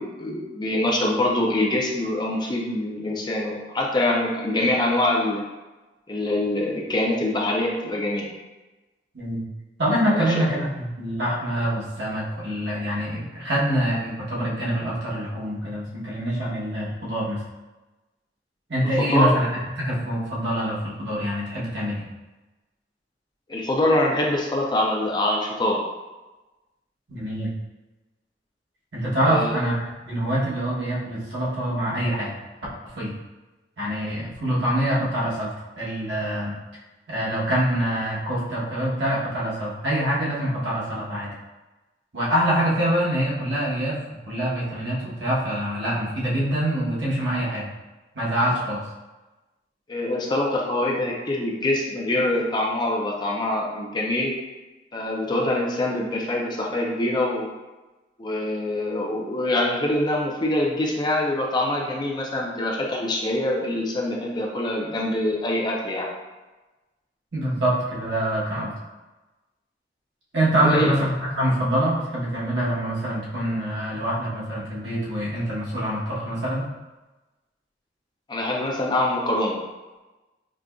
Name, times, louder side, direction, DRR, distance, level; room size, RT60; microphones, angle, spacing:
voice 1, 0.0-5.4 6.1-8.3 10.1-10.3 19.1-19.3 23.5-25.8 29.2-29.6 49.9-54.3 54.9-57.5 58.2-66.1 70.6-70.9 78.3-79.6, left 1 dB, 25° left, -1 dB, 0.4 m, -24 dB
voice 2, 9.8-17.4 18.7-22.0 27.1-27.5 28.9-32.3 32.9-33.1 33.8-36.5 37.1-41.3 42.1-47.7 48.1-48.8 67.3-68.7 70.3-76.6, right 1 dB, 75° right, -7 dB, 1.2 m, -25 dB
4.9 x 2.5 x 2.3 m, 1.1 s
head